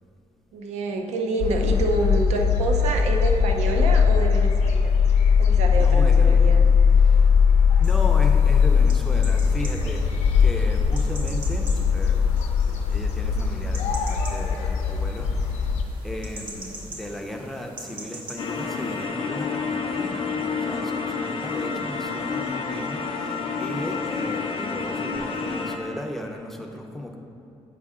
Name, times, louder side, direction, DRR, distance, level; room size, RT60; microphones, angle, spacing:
voice 1, 0.5-5.0 5.4-6.7 21.2-21.8, right 2 dB, 90° right, 3 dB, 0.6 m, -28 dB
sound 1, 1.4-15.8, left 6 dB, 90° left, 0.6 m, -20 dB
voice 2, 5.8-6.4 7.8-12.6 12.9-15.7 16.0-27.2, left 1 dB, ahead, 1 dB, 0.5 m, -35 dB
sound 2, 7.8-19.0, right 1 dB, 45° right, 0.9 m, -43 dB
sound 3, 18.4-25.8, left 5 dB, 50° left, 0.6 m, -29 dB
8.4 x 5.3 x 3.6 m, 2.7 s
cardioid pair, 175°, 11 cm